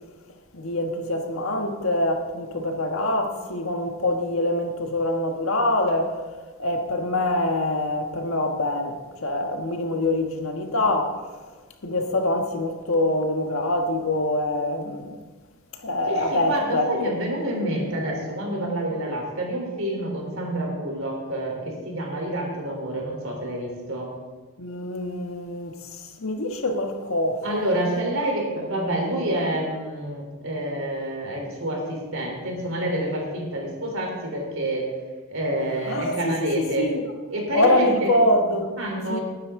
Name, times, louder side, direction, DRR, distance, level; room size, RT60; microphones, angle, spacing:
voice 1, 0.5-6.2 6.6-11.2 11.8-15.2 15.8-17.2 24.6-27.6 35.9-36.3 36.8-37.0 37.5-38.7 39.1-39.2, left 1 dB, 65° left, 1.4 m, -25 dB
voice 2, 16.1-24.1 27.4-34.9 35.3-36.9 37.3-38.1 38.8-39.2, right 1 dB, 65° right, 3.6 m, -28 dB
19.5 x 9.7 x 3.7 m
head